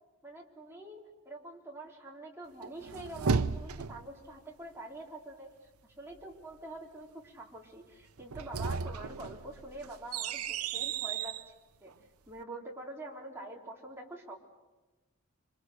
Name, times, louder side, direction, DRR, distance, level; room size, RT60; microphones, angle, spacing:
voice 1, 0.2-5.5 5.8-11.4 11.8-11.9 12.3-14.4, right 2 dB, 10° right, -2 dB, 3.5 m, -46 dB
sound 1, 2.6-4.1 8.2-11.4, right 5 dB, 80° right, 0.8 m, -34 dB
27.0 x 25.0 x 6.5 m, 1.2 s
head